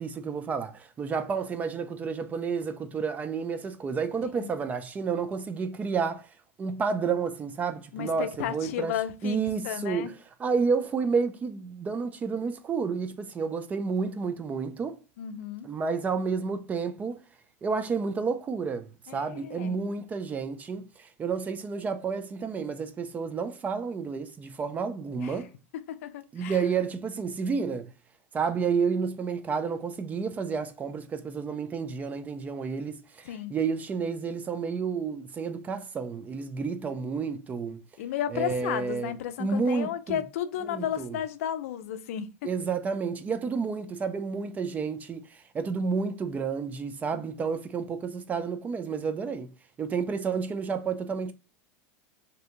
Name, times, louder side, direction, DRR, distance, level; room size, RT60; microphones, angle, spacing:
voice 1, 0.0-6.3 6.6-8.9 9.2-10.1 10.4-15.0 15.6-17.2 17.6-25.5 26.3-27.9 28.3-37.8 38.3-39.1 39.4-40.2 40.7-41.2 42.4-49.5 49.8-51.3, right 5 dB, 20° right, 0.3 m, -30 dB
voice 2, 7.9-9.4 9.6-10.1 15.2-15.7 19.1-19.8 25.2-25.4 25.9-26.6 33.2-33.5 38.0-42.3 47.1-47.4, left 10 dB, 75° left, 0.4 m, -33 dB
2.7 x 2.6 x 3.6 m
supercardioid pair, 130°, 8 cm